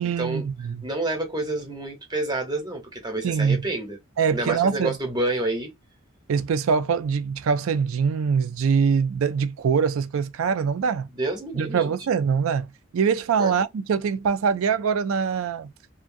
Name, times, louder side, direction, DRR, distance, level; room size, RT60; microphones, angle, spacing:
voice 1, 0.0-0.8 3.2-3.6 4.2-4.9 6.3-11.1 11.6-12.7 12.9-15.7, right 6 dB, 85° right, 0.4 m, -23 dB
voice 2, 0.8-4.0 4.3-5.7 11.2-11.9 13.4-13.5, right 2 dB, 20° right, 0.9 m, -28 dB
2.7 x 2.5 x 2.6 m
head